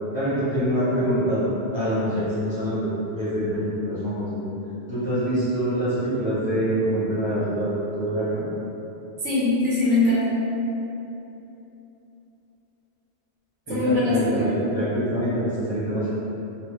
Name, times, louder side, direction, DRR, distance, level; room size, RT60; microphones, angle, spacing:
voice 1, 0.1-1.4 1.7-2.9 3.1-4.4 4.9-8.4 13.7-16.1, equal, 25° left, -11 dB, 1.0 m, -25 dB
voice 2, 9.2-10.4 13.7-14.7, left 2 dB, 85° right, -9 dB, 1.4 m, -22 dB
3.4 x 2.8 x 3.1 m, 3.0 s
omnidirectional pair, 1.2 m